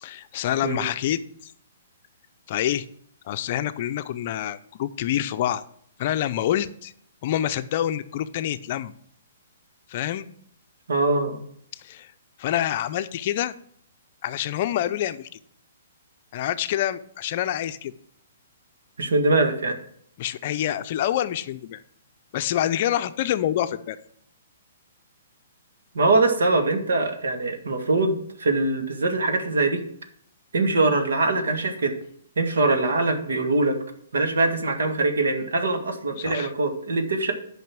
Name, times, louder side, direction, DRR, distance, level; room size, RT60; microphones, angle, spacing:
voice 1, 0.0-1.5 2.5-2.9 3.3-5.6 6.0-6.9 7.2-8.9 9.9-10.3 11.7-12.1 12.4-13.5 14.2-15.4 16.3-17.9 20.2-21.8 22.3-24.0 36.2-36.5, left 11 dB, 40° left, 11 dB, 0.5 m, -27 dB
voice 2, 10.9-11.4 19.0-19.8 25.9-29.8 30.5-32.0 32.4-33.8 34.1-37.3, right 3 dB, 85° right, 6 dB, 1.8 m, -23 dB
9.3 x 5.5 x 6.0 m, 0.64 s
hypercardioid pair, 160°, 0 cm